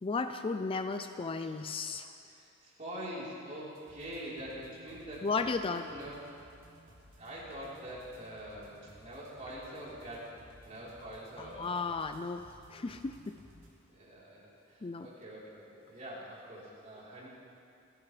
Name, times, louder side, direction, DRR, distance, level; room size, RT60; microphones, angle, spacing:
voice 1, 0.0-2.1 5.2-5.9 11.4-13.4 14.8-15.1, left 4 dB, 25° left, 8 dB, 0.4 m, -34 dB
voice 2, 2.2-5.3 5.6-6.2 7.2-11.7 13.9-17.3, equal, 40° right, -7 dB, 3.9 m, -45 dB
sound 1, 3.7-13.7, equal, 70° right, 3.2 m, -58 dB
27.0 x 11.0 x 3.3 m, 2.6 s
head